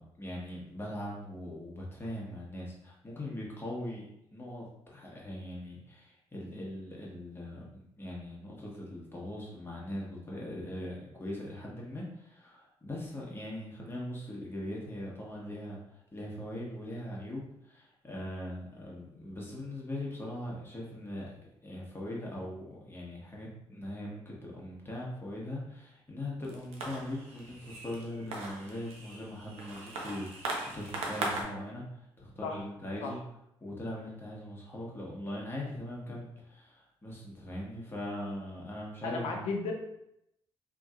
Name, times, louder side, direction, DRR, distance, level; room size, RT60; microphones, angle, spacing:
voice 1, 0.0-21.4 21.6-33.2 33.6-39.5, left 1 dB, 20° left, -4 dB, 1.1 m, -41 dB
sound 1, 26.4-31.4, right 2 dB, 80° right, 0.6 m, -39 dB
voice 2, 39.0-39.7, left 4 dB, 85° left, 2 dB, 0.5 m, -34 dB
2.9 x 2.8 x 2.4 m, 0.80 s
supercardioid pair, 65°, 10 cm